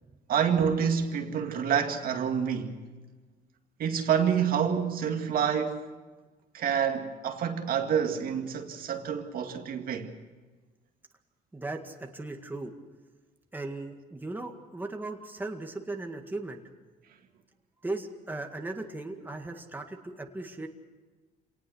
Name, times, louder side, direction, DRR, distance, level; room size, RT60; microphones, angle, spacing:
voice 1, 0.3-2.8 3.8-5.9 6.5-10.1, right 7 dB, 60° right, 2.1 m, -28 dB
voice 2, 11.5-12.7 13.5-16.6 17.8-20.7, right 2 dB, 10° right, 2.0 m, -37 dB
27.0 x 19.0 x 6.4 m
cardioid pair, 110°, 17 cm